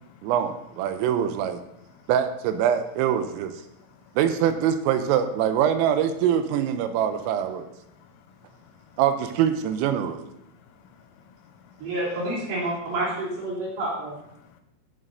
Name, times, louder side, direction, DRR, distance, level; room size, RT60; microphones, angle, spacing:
voice 1, 0.2-1.6 2.1-3.5 4.2-7.7 9.0-10.3, right 9 dB, 85° right, 9 dB, 3.2 m, -24 dB
voice 2, 3.7-4.2 7.9-9.0 10.4-11.9 14.4-14.6, left 7 dB, 80° left, 7 dB, 3.4 m, -56 dB
voice 3, 11.8-14.2, right 1 dB, 70° right, -6 dB, 5.5 m, -29 dB
18.5 x 7.4 x 2.6 m, 0.82 s
omnidirectional pair, 6.0 m